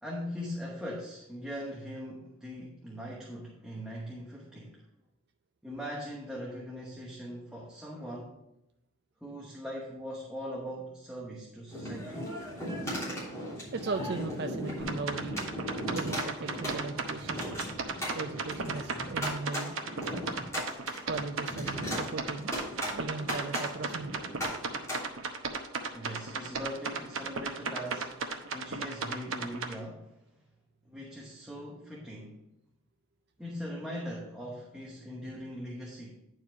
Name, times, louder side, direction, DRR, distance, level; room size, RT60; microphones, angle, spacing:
voice 1, 0.0-4.8 5.6-8.4 9.2-12.3 25.9-30.1 30.8-32.4 33.4-36.2, equal, 5° right, -4 dB, 1.0 m, -40 dB
sound 1, 11.7-25.0, equal, 15° left, 3.3 m, -37 dB
voice 2, 13.7-15.4 15.9-17.4 18.1-19.8 21.0-22.5 22.9-24.3, right 3 dB, 50° right, 6 dB, 0.4 m, -37 dB
sound 2, 14.8-29.7, right 4 dB, 70° right, 0.9 m, -35 dB
9.8 x 4.7 x 4.7 m, 0.85 s
head